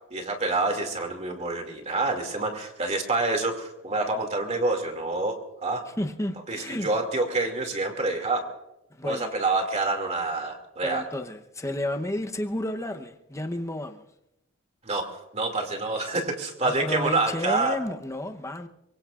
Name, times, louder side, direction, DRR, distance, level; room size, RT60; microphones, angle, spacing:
voice 1, 0.1-5.4 5.6-5.8 6.5-8.4 9.0-11.0 14.8-15.1 15.3-17.7, right 3 dB, 35° right, 2.5 m, -27 dB
voice 2, 6.0-6.9 8.9-9.3 10.8-14.0 16.6-18.7, left 1 dB, 15° left, 0.9 m, -31 dB
24.0 x 23.0 x 2.5 m
head